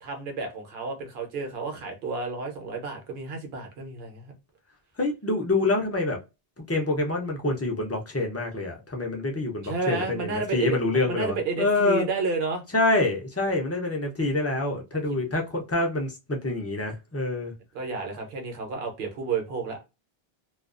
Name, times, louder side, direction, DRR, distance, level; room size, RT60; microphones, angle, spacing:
voice 1, 0.0-4.4 9.6-12.6 17.7-19.8, right 4 dB, 75° right, 1.0 m, -31 dB
voice 2, 5.0-6.2 6.7-12.1 12.7-17.5, left 2 dB, 25° left, 0.4 m, -26 dB
2.3 x 2.3 x 2.4 m
omnidirectional pair, 1.0 m